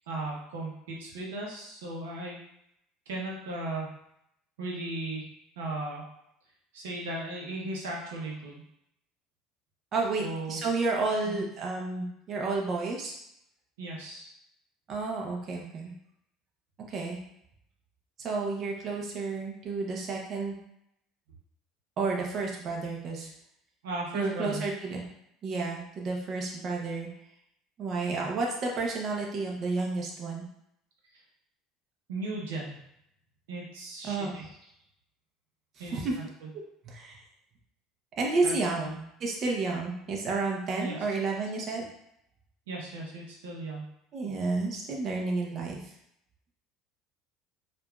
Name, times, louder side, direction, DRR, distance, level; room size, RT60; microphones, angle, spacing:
voice 1, 0.1-2.4 3.1-3.9 4.6-5.2 5.6-6.1 6.7-8.6 10.2-10.6 11.3-11.4 13.8-14.3 23.8-24.6 32.1-32.8 33.5-34.4 35.8-36.0 38.4-38.9 40.8-41.0 42.7-43.9, right 2 dB, 85° right, -2 dB, 0.8 m, -36 dB
voice 2, 9.9-13.1 14.9-15.9 16.9-17.2 18.2-20.5 22.0-23.3 24.1-25.0 25.4-27.1 27.8-30.4 34.0-34.5 35.8-36.2 36.8-37.2 38.2-38.9 39.2-41.8 44.1-45.9, right 3 dB, 45° right, -1 dB, 0.8 m, -31 dB
4.7 x 2.5 x 2.3 m, 0.75 s
hypercardioid pair, 80°, 0 cm